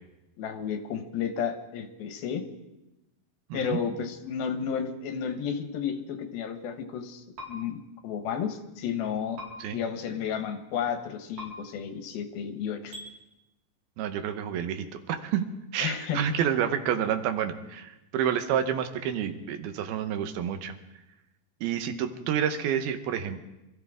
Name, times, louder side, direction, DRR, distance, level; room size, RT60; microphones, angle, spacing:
voice 1, 0.4-2.4 3.5-9.4 9.7-12.9 15.8-16.2, left 7 dB, 80° left, 7 dB, 3.0 m, -32 dB
voice 2, 3.5-3.8 9.6-9.8 14.0-15.5 15.7-20.7 21.6-23.4, right 9 dB, 90° right, 8 dB, 3.0 m, -29 dB
sound 1, 7.4-7.5 9.4-9.5 11.4-11.5 12.9-13.1, left 1 dB, 65° right, 5.9 m, -39 dB
26.0 x 14.0 x 3.6 m, 0.96 s
omnidirectional pair, 4.2 m